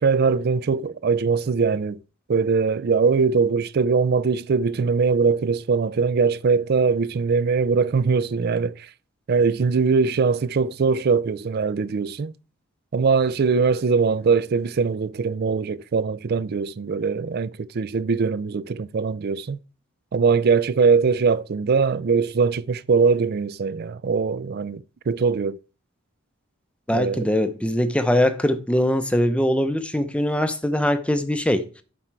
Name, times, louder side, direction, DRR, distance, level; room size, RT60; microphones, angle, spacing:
voice 1, 0.0-2.0 2.3-8.9 9.3-12.3 12.9-19.6 20.1-25.6 26.9-27.3, right 5 dB, 50° right, 0.4 m, -21 dB
voice 2, 26.9-31.8, left 1 dB, 5° left, 0.7 m, -22 dB
11.0 x 4.4 x 4.6 m
head